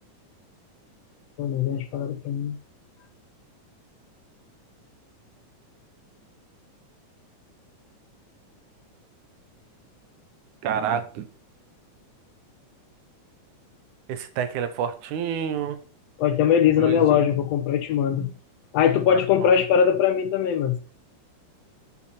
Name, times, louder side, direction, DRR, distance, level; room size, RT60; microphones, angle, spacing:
voice 1, 1.4-2.6 16.2-18.3 18.7-20.8, left 8 dB, 75° left, 1.6 m, -21 dB
voice 2, 10.6-11.3 14.1-15.8 16.8-17.3 19.1-19.5, right 8 dB, 75° right, 2.3 m, -29 dB
9.5 x 6.0 x 4.3 m
omnidirectional pair, 3.7 m